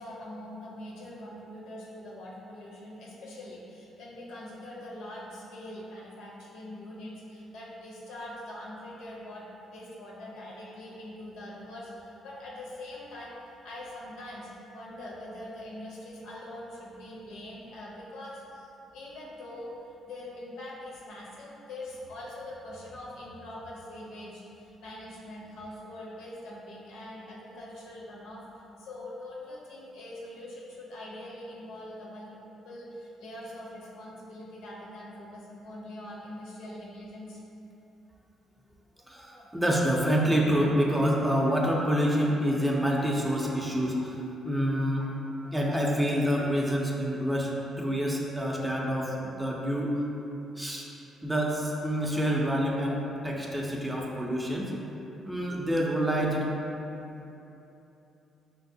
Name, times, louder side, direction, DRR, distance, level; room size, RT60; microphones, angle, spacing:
voice 1, 0.0-13.4 13.6-19.7 20.1-28.4 28.8-32.3 32.6-37.4, left 1 dB, 85° left, -5 dB, 0.6 m, -43 dB
voice 2, 39.1-45.1 45.5-47.5 47.8-49.9 50.6-50.9 51.2-54.7 55.2-56.5, equal, 5° right, -3 dB, 0.4 m, -27 dB
4.5 x 2.0 x 2.6 m, 3.0 s
cardioid pair, 75°, 0 cm